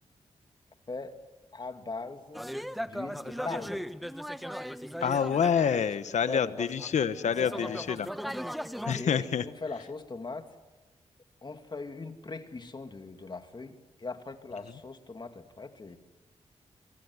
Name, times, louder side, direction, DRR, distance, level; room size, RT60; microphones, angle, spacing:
voice 1, 0.9-1.2 1.5-2.5 2.8-3.9 6.3-6.7 7.2-7.9 8.9-10.5 11.4-16.0, left 3 dB, 40° left, 7 dB, 2.7 m, -40 dB
sound 1, 2.3-6.3 6.8-9.0, equal, ahead, 1.1 m, -38 dB
voice 2, 5.0-8.1 8.9-9.4, left 7 dB, 75° left, 13 dB, 1.3 m, -27 dB
24.5 x 24.5 x 9.7 m, 1.1 s
cardioid pair, 65°, 12 cm